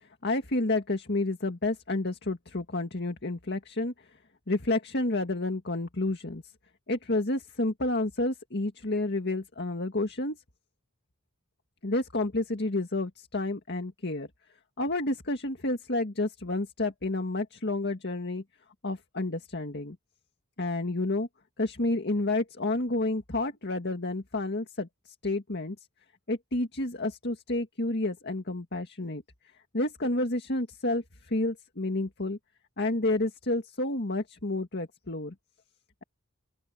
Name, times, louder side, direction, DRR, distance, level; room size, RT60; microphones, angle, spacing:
voice 1, 0.0-3.9 4.5-6.4 6.9-10.4 11.8-14.3 14.8-18.4 18.8-20.0 20.6-21.3 21.6-25.8 26.3-29.2 29.7-32.4 32.8-35.3, left 2 dB, 50° left, 2.0 m, -30 dB
open air
head